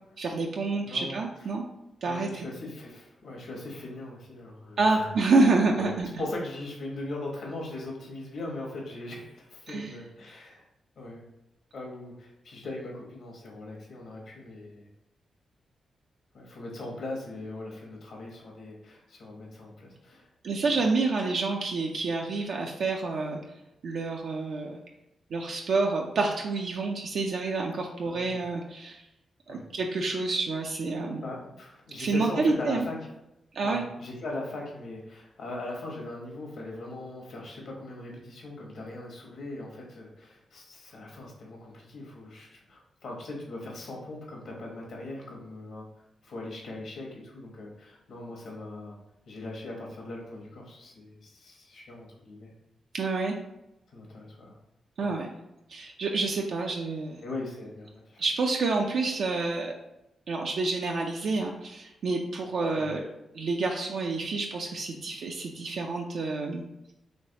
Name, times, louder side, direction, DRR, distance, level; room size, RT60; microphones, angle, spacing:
voice 1, 0.2-1.6 2.0-2.5 4.8-6.2 9.7-10.0 20.4-23.4 23.8-24.8 25.3-29.0 29.5-31.2 32.0-32.9 33.5-33.9 52.9-53.4 55.0-55.3 55.7-57.2 58.2-59.7 60.3-63.0 63.3-66.6, right 3 dB, 70° right, 1 dB, 0.3 m, -28 dB
voice 2, 0.8-1.2 2.0-5.1 5.8-5.9 6.2-10.6 11.0-11.3 11.7-14.9 16.3-20.3 20.7-20.8 28.0-28.4 29.5-29.6 31.2-32.9 33.6-45.9 46.2-49.0 49.3-52.5 53.9-54.6 55.0-55.1 57.2-58.2 62.8-62.9, left 2 dB, 70° left, -2 dB, 1.0 m, -40 dB
3.2 x 3.0 x 2.8 m, 0.89 s
cardioid pair, 60°, 0 cm